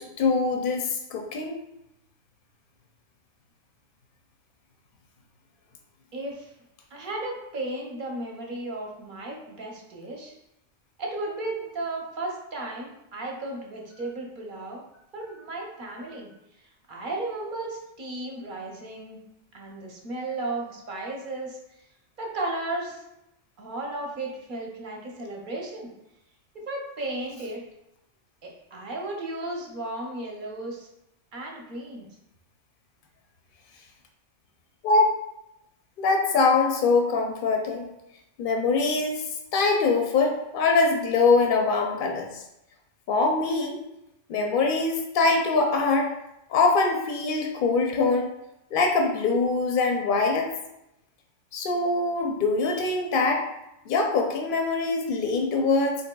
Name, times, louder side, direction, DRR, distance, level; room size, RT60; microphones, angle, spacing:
voice 1, 0.0-1.6 34.8-35.1 36.0-37.9 38.4-39.2 39.5-42.4 43.1-43.8 44.3-46.1 46.5-48.3 48.7-50.5 51.5-53.5 53.9-55.9, left 3 dB, 60° left, 2 dB, 0.6 m, -23 dB
voice 2, 6.1-6.5 6.9-10.3 11.0-14.8 15.1-16.3 16.9-19.2 19.5-21.6 22.2-23.0 23.6-25.9 26.7-27.6 28.4-30.9 31.3-32.1, right 2 dB, 50° right, -1 dB, 0.8 m, -34 dB
4.3 x 2.9 x 2.2 m, 0.86 s
omnidirectional pair, 1.2 m